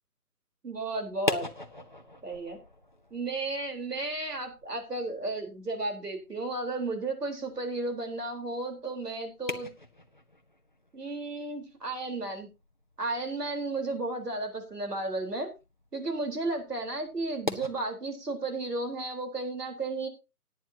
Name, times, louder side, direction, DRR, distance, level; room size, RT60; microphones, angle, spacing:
voice 1, 0.6-1.5 2.2-2.6 3.1-9.7 10.9-12.5 13.0-15.5 15.9-20.1, right 2 dB, 80° right, 3 dB, 4.2 m, -33 dB
sound 1, 1.0-17.7, left 1 dB, 30° left, 0.7 m, -43 dB
18.5 x 9.2 x 2.9 m, 0.27 s
figure-of-eight pair, 165°, 46 cm